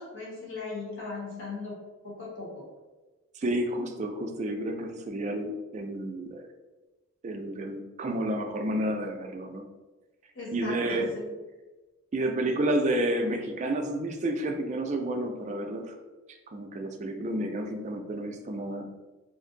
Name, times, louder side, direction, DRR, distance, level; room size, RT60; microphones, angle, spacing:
voice 1, 0.0-1.8 2.0-2.6 10.3-11.3, left 3 dB, 60° left, -5 dB, 1.2 m, -38 dB
voice 2, 3.3-6.5 7.2-9.7 10.5-11.1 12.1-16.0 16.3-18.9, right 1 dB, 35° right, 4 dB, 0.3 m, -30 dB
2.6 x 2.5 x 3.7 m, 1.2 s
head